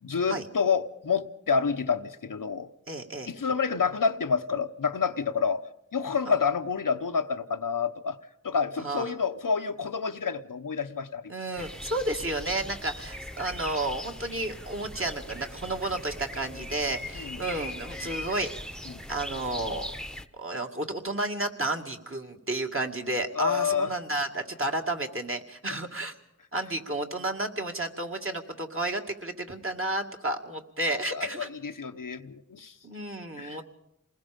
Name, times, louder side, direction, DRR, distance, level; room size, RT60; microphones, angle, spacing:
voice 1, 0.0-2.7 3.3-5.6 5.9-8.2 8.4-11.3 17.1-17.4 18.9-19.0 23.3-23.9 25.7-25.8 31.1-32.7 33.4-33.6, left 5 dB, 80° left, 8 dB, 0.9 m, -28 dB
voice 2, 2.9-3.3 8.8-9.1 11.3-19.9 20.4-26.1 26.5-31.5 32.8-33.7, right 2 dB, 40° right, 2 dB, 2.3 m, -32 dB
sound 1, 11.6-20.3, left 1 dB, ahead, 1.0 m, -40 dB
27.5 x 20.0 x 5.3 m, 0.80 s
wide cardioid pair, 45°, 32 cm